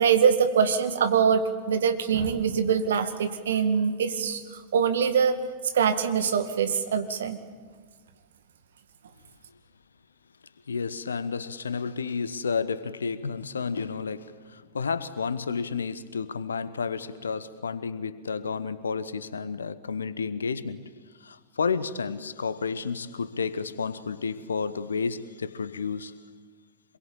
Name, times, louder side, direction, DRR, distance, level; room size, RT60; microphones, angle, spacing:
voice 1, 0.0-4.4 4.7-5.4 5.7-7.4, right 7 dB, 65° right, 2.0 m, -23 dB
voice 2, 10.7-20.9 21.2-26.2, left 5 dB, 70° left, 1.2 m, -31 dB
26.5 x 22.0 x 8.8 m
figure-of-eight pair, 90°, 0 cm